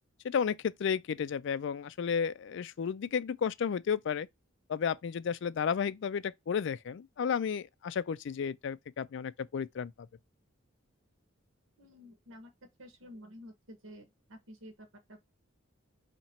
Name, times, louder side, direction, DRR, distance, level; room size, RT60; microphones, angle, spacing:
voice 1, 0.2-4.3 4.7-9.9, left 7 dB, 65° left, 0.4 m, -32 dB
voice 2, 11.8-12.5 12.8-15.2, equal, 90° right, 1.2 m, -51 dB
4.3 x 2.9 x 4.3 m
head